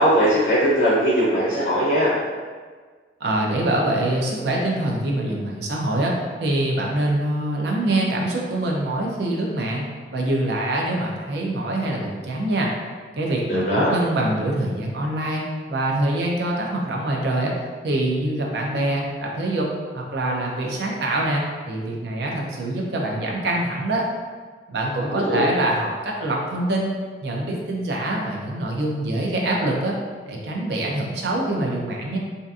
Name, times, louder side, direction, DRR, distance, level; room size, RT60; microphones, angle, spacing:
voice 1, 0.0-2.1 13.5-13.9 25.1-25.4, equal, 55° left, -7 dB, 0.5 m, -20 dB
voice 2, 3.2-6.1 6.4-12.7 13.2-17.5 17.8-19.7 19.9-24.0 24.7-26.9 27.2-30.0 30.3-32.2, right 1 dB, 65° right, -1 dB, 0.5 m, -24 dB
2.7 x 2.4 x 2.3 m, 1.5 s
head